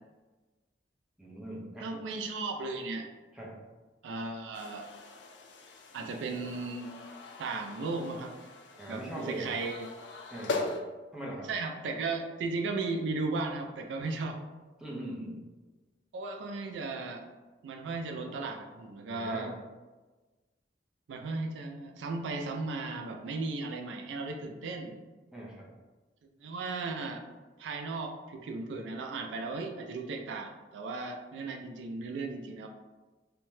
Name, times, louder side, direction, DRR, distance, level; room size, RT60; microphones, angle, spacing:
voice 1, 1.2-1.9 3.3-3.6 8.8-9.5 10.3-10.8 11.1-11.5 14.8-15.4 19.1-19.5 25.3-25.7, right 1 dB, 5° right, -5 dB, 0.6 m, -40 dB
voice 2, 1.8-3.1 4.0-4.9 5.9-6.9 7.4-8.3 8.9-9.9 11.5-14.4 16.1-17.3 17.6-19.5 21.1-25.0 26.4-27.2 27.6-32.7, right 3 dB, 80° right, 4 dB, 0.3 m, -36 dB
sound 1, 4.5-10.8, left 3 dB, 75° left, 0.4 m, -41 dB
2.7 x 2.2 x 3.1 m, 1.2 s
head